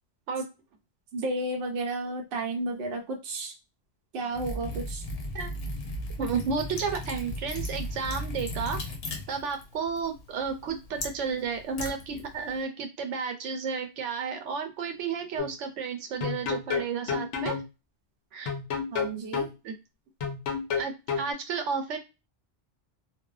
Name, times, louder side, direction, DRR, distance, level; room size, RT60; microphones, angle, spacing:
voice 1, 1.1-3.5 4.1-5.0 18.9-19.5, right 2 dB, 65° right, 1 dB, 0.7 m, -32 dB
Liquid, 4.3-12.6, left 1 dB, 60° left, 0.9 m, -37 dB
voice 2, 6.2-8.8 9.3-17.5 18.3-18.5 19.6-19.8 20.8-22.0, right 5 dB, 90° right, 5 dB, 1.0 m, -32 dB
sound 1, 15.4-15.5 16.2-17.7 18.5-19.5 20.2-21.3, left 6 dB, 85° left, 1.0 m, -30 dB
2.8 x 2.1 x 2.3 m, 0.27 s
omnidirectional pair, 1.2 m